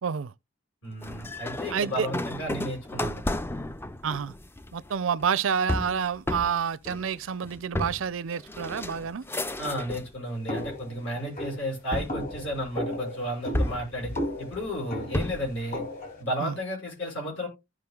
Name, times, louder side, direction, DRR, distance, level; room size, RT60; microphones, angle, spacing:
voice 1, 0.0-0.3 1.7-2.1 4.0-4.3 4.7-9.2 16.4-16.6, right 7 dB, 75° right, 0.5 m, -28 dB
voice 2, 0.8-3.2 9.6-14.1 14.4-15.8 16.2-17.5, equal, 70° left, 6.1 m, -33 dB
sound 1, 1.0-10.2 10.5-11.2 11.9-13.0 13.5-15.6, left 1 dB, 10° left, 0.4 m, -33 dB
sound 2, 10.5-16.2, left 1 dB, 45° left, 2.9 m, -35 dB
15.0 x 5.0 x 2.3 m
head